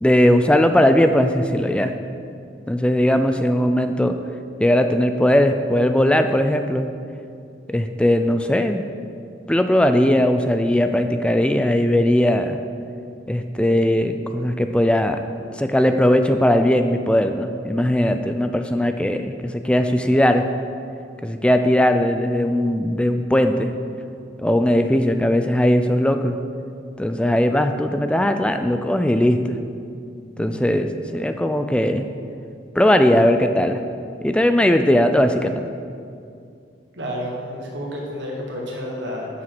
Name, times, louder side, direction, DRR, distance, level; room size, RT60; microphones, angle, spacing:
voice 1, 0.0-2.0 2.7-4.2 4.6-6.9 7.7-8.8 9.5-12.6 13.3-15.2 15.5-20.4 21.2-23.7 24.4-26.4 27.0-29.6 30.4-32.1 32.8-33.8 34.2-35.6, left 1 dB, 5° left, 7 dB, 0.3 m, -19 dB
voice 2, 30.3-30.8 37.0-39.3, equal, 85° right, -2 dB, 1.5 m, -31 dB
7.4 x 6.2 x 6.1 m, 2.4 s
head